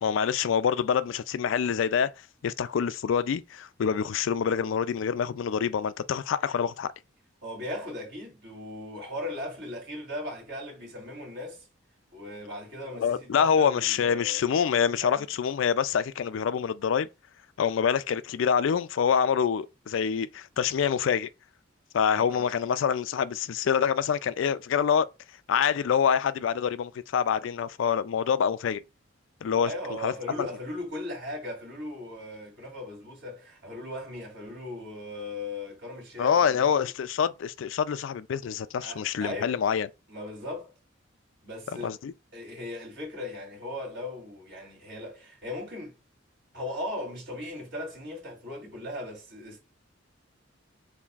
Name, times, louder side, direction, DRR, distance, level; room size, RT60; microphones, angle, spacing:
voice 1, 0.0-2.1 2.4-6.9 13.0-17.1 17.6-21.3 21.9-25.1 25.5-28.8 29.4-29.7 30.0-30.1 36.2-39.9 41.8-42.1, left 7 dB, 70° left, 0.3 m, -26 dB
voice 2, 7.4-11.7 12.1-14.5 15.0-15.3 22.1-22.4 29.6-36.9 38.8-39.6 40.1-40.7 41.4-41.9 42.3-46.0 46.5-49.6, left 1 dB, 60° right, 2.9 m, -38 dB
7.0 x 2.7 x 2.4 m
head